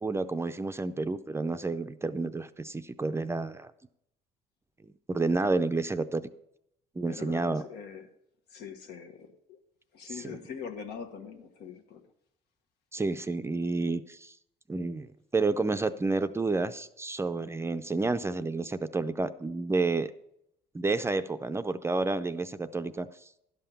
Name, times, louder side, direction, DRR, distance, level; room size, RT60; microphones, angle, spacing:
voice 1, 0.0-3.7 5.1-6.3 7.0-7.6 10.2-10.4 12.9-14.3 14.7-15.1 15.3-20.1 20.7-23.1, right 3 dB, 15° right, 10 dB, 0.5 m, -30 dB
voice 2, 7.1-8.1 8.5-9.6 9.9-12.0, left 6 dB, 80° left, 5 dB, 1.4 m, -43 dB
11.5 x 5.7 x 7.0 m, 0.78 s
cardioid pair, 110°, 17 cm